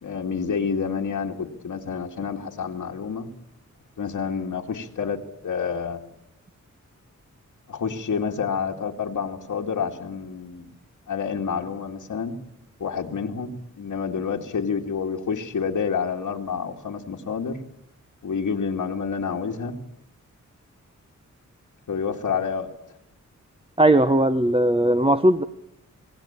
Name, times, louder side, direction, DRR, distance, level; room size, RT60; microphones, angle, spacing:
voice 1, 0.0-3.3 4.0-6.0 7.7-10.7 11.1-12.4 12.8-17.6 18.2-19.7 21.9-22.7, left 6 dB, 85° left, 0 dB, 2.2 m, -28 dB
voice 2, 23.8-25.4, right 1 dB, 20° right, 9 dB, 0.9 m, -18 dB
27.5 x 17.5 x 8.8 m, 0.81 s
wide cardioid pair, 100°, 30 cm